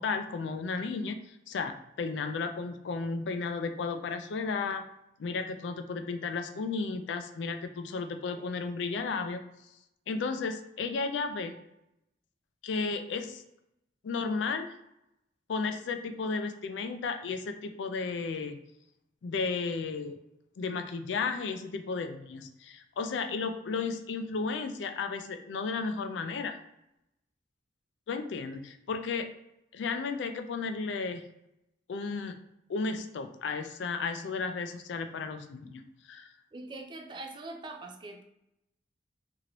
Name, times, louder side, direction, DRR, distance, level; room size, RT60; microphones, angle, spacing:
voice 1, 0.0-4.8 5.2-9.4 10.1-11.6 12.6-13.4 14.0-14.7 15.5-18.6 19.2-20.2 20.6-26.6 28.1-29.3 29.7-31.2 31.9-32.4 32.7-35.8 36.1-36.3, left 4 dB, 85° left, 8 dB, 0.4 m, -33 dB
voice 2, 36.5-38.2, right 2 dB, 25° right, 4 dB, 0.3 m, -43 dB
2.9 x 2.5 x 2.9 m, 0.85 s
head